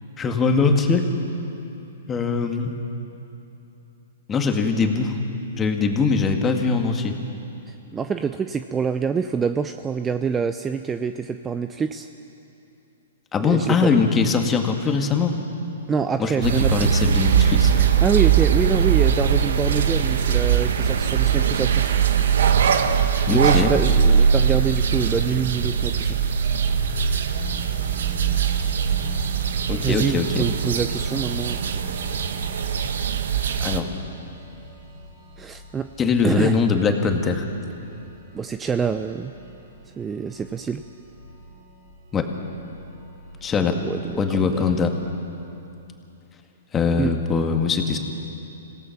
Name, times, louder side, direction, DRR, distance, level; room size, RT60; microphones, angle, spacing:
voice 1, 0.2-1.1 2.1-2.8 4.3-5.2 5.6-7.2 13.3-15.3 16.2-17.7 23.3-23.8 29.7-30.4 33.6-33.9 36.0-37.5 42.1-42.3 43.4-43.8 44.2-44.9 46.7-48.0, left 5 dB, 20° left, 4 dB, 1.9 m, -21 dB
voice 2, 7.9-12.1 13.4-13.9 15.9-16.9 17.8-21.9 23.3-26.2 29.8-31.8 35.4-35.9 36.2-36.6 38.3-39.3 40.0-40.8 43.8-44.7 47.0-47.1, right 6 dB, 15° right, 9 dB, 0.6 m, -26 dB
sound 1, 16.4-33.8, right 7 dB, 70° right, 1.3 m, -21 dB
sound 2, 26.5-45.1, right 4 dB, 50° right, 5.6 m, -43 dB
26.5 x 17.5 x 6.0 m, 2.9 s
hypercardioid pair, 130°, 0 cm